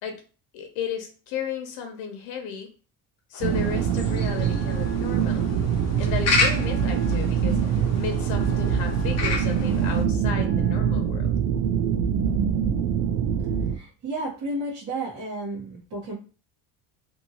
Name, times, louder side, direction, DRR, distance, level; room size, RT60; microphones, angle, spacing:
voice 1, 0.5-2.7 3.3-5.5 6.0-11.3, left 7 dB, 70° left, 4 dB, 0.8 m, -34 dB
sound 1, 3.3-10.0, left 4 dB, 40° left, 0.8 m, -31 dB
sound 2, 3.4-13.8, right 8 dB, 65° right, 0.5 m, -24 dB
Wind instrument woodwind instrument, 3.9-11.2, left 4 dB, 25° left, 1.1 m, -43 dB
voice 2, 13.7-16.1, right 1 dB, 40° right, -7 dB, 1.2 m, -32 dB
2.7 x 2.6 x 2.8 m, 0.36 s
cardioid pair, 130°, 41 cm